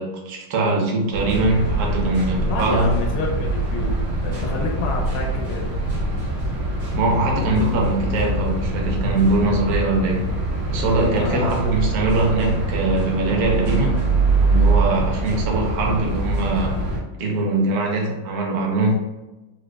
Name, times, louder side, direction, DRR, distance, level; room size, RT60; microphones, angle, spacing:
voice 1, 0.0-2.9 6.9-10.3 10.7-14.1 14.4-16.8 17.2-18.9, right 2 dB, 60° right, 0 dB, 1.0 m, -22 dB
sound 1, 1.1-17.0, right 2 dB, 85° right, 1.9 m, -23 dB
voice 2, 2.5-3.9 4.2-5.7 11.1-11.6, left 3 dB, 80° left, 0 dB, 1.4 m, -29 dB
4.9 x 2.1 x 2.2 m, 1.0 s
omnidirectional pair, 2.3 m